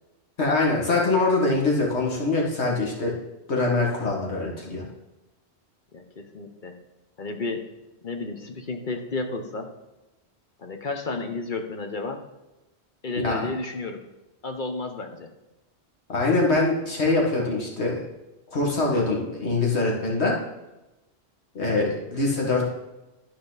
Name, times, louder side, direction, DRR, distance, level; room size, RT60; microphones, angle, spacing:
voice 1, 0.4-3.2 3.5-4.8 13.2-13.4 16.1-18.0 18.5-20.4 21.6-22.7, left 3 dB, 80° left, -1 dB, 2.1 m, -23 dB
voice 2, 5.9-6.8 7.2-7.7 8.0-9.7 10.6-12.3 13.0-14.0 14.4-15.3, left 3 dB, 50° left, 5 dB, 1.0 m, -32 dB
12.0 x 4.9 x 4.0 m, 1.0 s
omnidirectional pair, 1.1 m